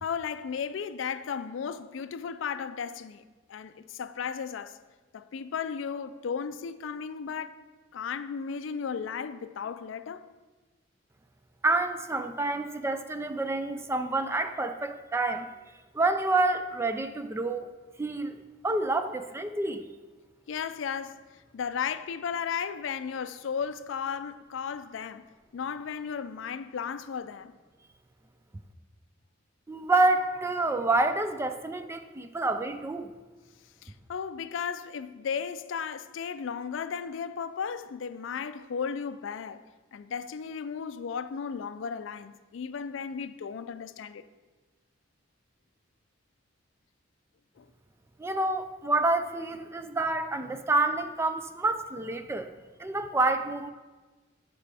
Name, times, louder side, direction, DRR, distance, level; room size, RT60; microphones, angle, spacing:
voice 1, 0.0-3.2 3.5-4.8 5.1-7.6 7.9-10.2 20.5-21.2 21.5-25.3 25.5-27.5 33.8-39.6 39.9-44.3 47.6-47.7, left 6 dB, 75° left, 0.4 m, -35 dB
voice 2, 11.6-15.5 15.9-17.7 18.0-18.4 18.6-19.9 29.7-33.1 48.2-52.5 52.8-53.7, right 2 dB, 15° right, 0.3 m, -28 dB
14.0 x 5.1 x 3.4 m
head